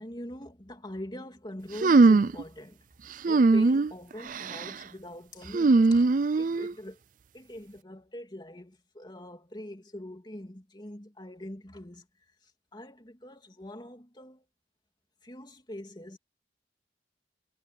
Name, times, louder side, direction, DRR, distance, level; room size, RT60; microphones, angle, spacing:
voice 1, 0.0-2.8 3.2-7.0 7.3-12.1 12.7-14.4 15.2-16.2, left 1 dB, 25° left, 2.9 m, -43 dB
sound 1, 1.8-2.4 3.2-3.9 4.3-4.7 5.5-6.7, right 3 dB, 50° right, 0.4 m, -21 dB
head